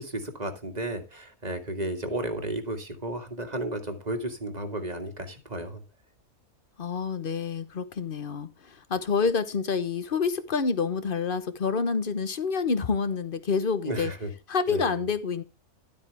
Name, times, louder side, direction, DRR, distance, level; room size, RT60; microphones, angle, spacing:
voice 1, 0.0-5.8 13.8-14.3 14.7-14.9, right 1 dB, 30° right, 2.0 m, -33 dB
voice 2, 6.8-14.1 14.5-15.4, left 5 dB, 40° left, 1.1 m, -28 dB
12.5 x 8.4 x 3.4 m
omnidirectional pair, 1.5 m